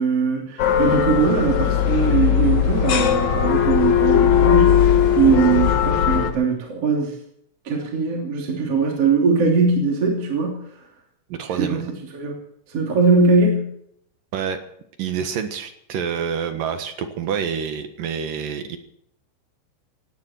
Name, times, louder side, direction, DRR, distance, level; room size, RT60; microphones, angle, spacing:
voice 1, 0.0-4.8 5.1-7.1 7.6-10.6 11.6-11.9 12.1-12.4 12.7-13.7, right 4 dB, 35° right, 0 dB, 3.4 m, -20 dB
sound 1, 0.6-6.3, left 9 dB, 65° left, 1.9 m, -18 dB
voice 2, 11.3-11.9 14.3-14.6 15.0-18.8, right 7 dB, 65° right, 8 dB, 2.3 m, -27 dB
18.0 x 17.5 x 4.5 m, 0.71 s
omnidirectional pair, 5.7 m